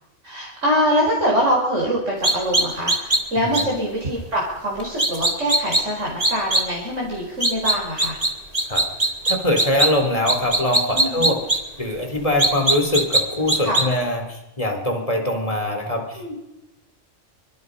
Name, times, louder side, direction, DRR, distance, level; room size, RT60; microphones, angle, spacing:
voice 1, 0.2-8.2 10.9-11.3 13.6-13.9 16.1-16.3, equal, 75° right, -3 dB, 5.1 m, -24 dB
sound 1, 2.2-3.2 3.5-3.6 5.0-5.8 6.2-6.6 7.4-8.3 8.5-9.9 10.3-11.6 12.4-13.2 13.5-13.8, right 2 dB, 30° right, 2.6 m, -19 dB
voice 2, 3.4-3.7 8.7-8.8 9.3-11.4 11.8-16.3, left 1 dB, 25° left, 4 dB, 4.1 m, -23 dB
28.5 x 24.5 x 5.5 m, 0.96 s
omnidirectional pair, 1.3 m